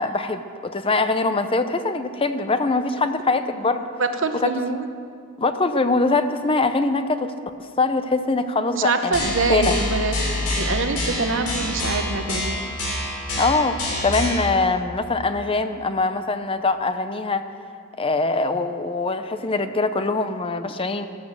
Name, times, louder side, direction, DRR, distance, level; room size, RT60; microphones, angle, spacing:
voice 1, 0.0-3.9 4.4-4.8 5.4-7.3 7.8-9.8 13.4-13.8 14.0-17.4 18.0-21.1, left 3 dB, 25° left, 10 dB, 0.6 m, -23 dB
voice 2, 4.0-4.9 8.7-12.6, right 3 dB, 60° right, 7 dB, 1.0 m, -25 dB
sound 1, 9.1-14.5, left 1 dB, 85° left, 5.2 m, -26 dB
14.0 x 12.5 x 7.5 m, 2.4 s
head